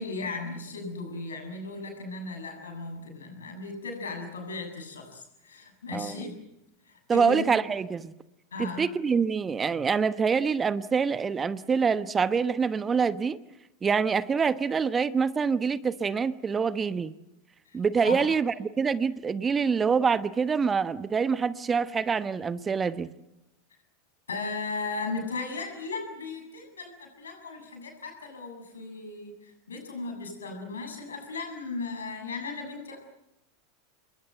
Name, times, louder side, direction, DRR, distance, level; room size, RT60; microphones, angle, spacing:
voice 1, 0.0-6.4 6.9-7.4 8.5-8.9 17.7-18.2 24.3-33.0, left 3 dB, 75° left, 5 dB, 7.3 m, -36 dB
voice 2, 7.1-8.1 8.6-13.4 13.8-17.1 17.7-23.1, right 5 dB, 20° right, 15 dB, 1.1 m, -26 dB
28.0 x 22.0 x 8.0 m, 0.86 s
figure-of-eight pair, 85°, 0 cm